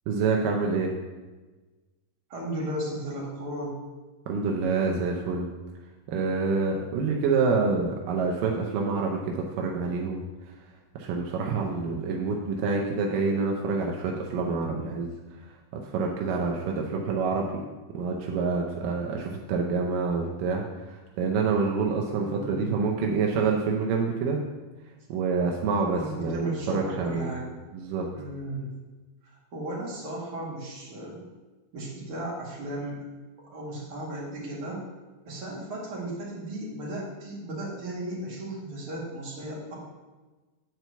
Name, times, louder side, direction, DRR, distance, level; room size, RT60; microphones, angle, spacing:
voice 1, 0.1-0.9 4.3-5.5 6.1-10.2 11.0-15.1 15.9-17.6 17.9-24.4 25.1-27.3 27.7-28.1, right 4 dB, 90° right, 0 dB, 2.5 m, -27 dB
voice 2, 2.3-3.8 22.2-22.7 25.9-27.5 28.1-28.7 29.2-31.2 31.7-33.0 33.4-34.9 35.3-39.8, right 1 dB, 45° right, -5 dB, 2.9 m, -35 dB
9.5 x 4.6 x 6.8 m, 1.2 s
omnidirectional pair, 3.8 m